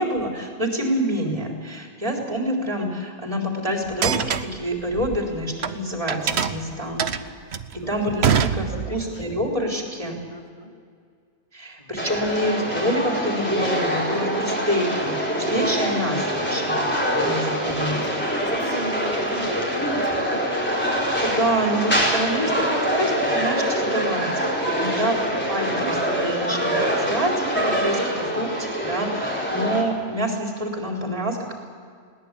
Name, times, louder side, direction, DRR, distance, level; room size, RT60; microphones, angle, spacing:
voice 1, 0.0-7.0 7.7-10.2 11.5-16.8 17.2-18.0 21.2-24.3 24.7-31.5, equal, 30° right, 1 dB, 4.0 m, -27 dB
sound 1, 3.9-5.7 6.1-9.1, right 7 dB, 70° right, 1.2 m, -24 dB
voice 2, 6.9-7.2 7.8-8.1 8.7-9.4 10.3-10.7 11.8-11.9 17.5-21.5 25.1-25.2 28.5-28.6 29.0-29.3, left 1 dB, 30° left, 1 dB, 3.2 m, -37 dB
sound 2, 12.0-29.8, equal, 10° left, 4.5 m, -24 dB
21.0 x 18.5 x 8.4 m, 2.2 s
omnidirectional pair, 1.2 m